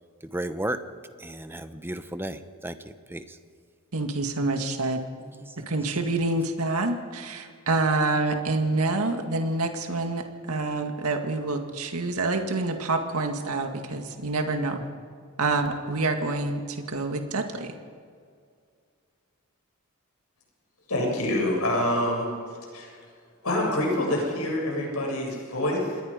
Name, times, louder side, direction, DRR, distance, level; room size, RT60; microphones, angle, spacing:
voice 1, 0.2-0.8 1.2-3.4 5.4-5.8, right 1 dB, 10° right, 10 dB, 0.9 m, -34 dB
voice 2, 3.9-5.0 5.6-14.8 15.4-17.7, right 3 dB, 90° right, 5 dB, 2.0 m, -27 dB
voice 3, 20.9-22.3 22.7-22.9 23.4-26.0, left 1 dB, 85° left, -1 dB, 7.6 m, -26 dB
27.0 x 21.0 x 5.2 m, 2.2 s
head